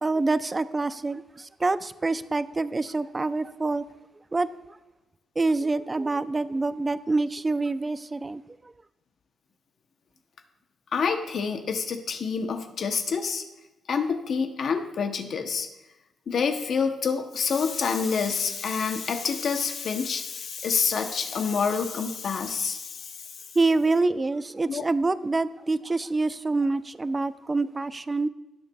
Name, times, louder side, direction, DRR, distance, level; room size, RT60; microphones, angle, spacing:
voice 1, 0.0-3.8 4.3-4.8 5.4-8.4 23.6-28.3, right 3 dB, 20° right, 0.3 m, -26 dB
voice 2, 10.9-13.4 13.9-15.7 16.3-23.2 24.7-24.8, left 5 dB, 55° left, 0.7 m, -27 dB
18.0 x 6.7 x 2.3 m
cardioid pair, 120°, 0 cm